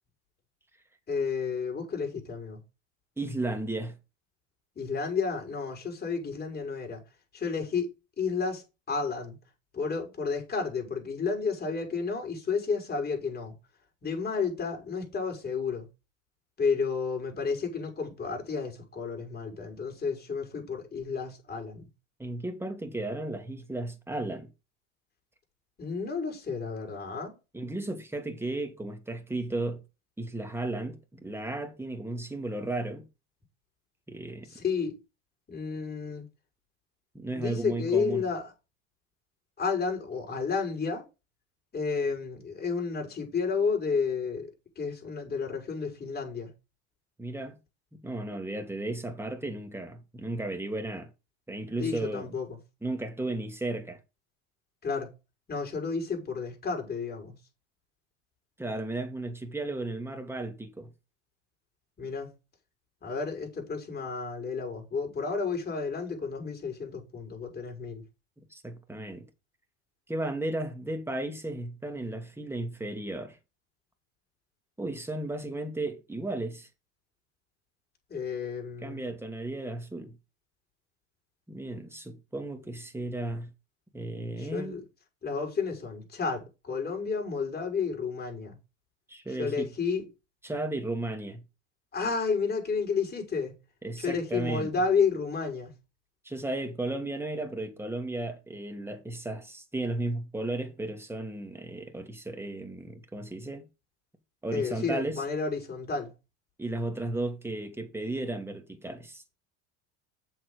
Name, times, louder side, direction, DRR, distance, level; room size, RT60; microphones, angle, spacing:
voice 1, 1.1-2.6 4.8-7.0 7.3-7.9 8.2-9.4 9.7-13.5 14.0-15.9 16.6-21.8 25.8-27.4 34.5-35.0 35.5-36.3 37.3-38.5 39.6-41.1 41.7-46.5 51.8-52.6 54.8-55.1 55.5-57.3 62.0-62.3 63.0-68.0 78.1-79.0 84.4-84.8 85.2-88.6 89.4-90.1 91.9-93.5 94.0-95.7 104.5-106.1, left 5 dB, 25° left, 6.0 m, -31 dB
voice 2, 3.2-4.0 22.2-24.5 27.5-29.8 30.2-33.1 34.1-34.5 37.1-38.2 47.2-47.5 48.0-51.1 51.5-52.3 52.8-54.0 58.6-60.9 68.5-69.3 70.1-73.4 74.8-76.7 78.8-80.1 81.5-83.5 83.9-84.8 89.1-89.7 90.4-91.4 93.8-94.7 96.2-103.6 104.4-105.2 106.6-109.2, right 2 dB, 5° right, 2.6 m, -34 dB
7.9 x 7.1 x 5.5 m
supercardioid pair, 105°, 36 cm